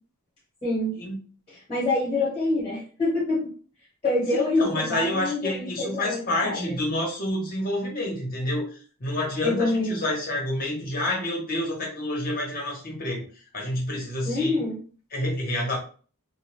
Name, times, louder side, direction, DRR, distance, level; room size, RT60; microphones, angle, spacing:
voice 1, 0.6-0.9 1.5-3.5 4.0-6.8 9.4-10.0 14.3-14.7, left 2 dB, 25° left, -7 dB, 1.2 m, -26 dB
voice 2, 4.3-8.7 9.0-13.2 13.5-14.6 15.1-15.8, left 1 dB, 40° left, -2 dB, 1.0 m, -28 dB
2.3 x 2.3 x 3.0 m, 0.40 s
head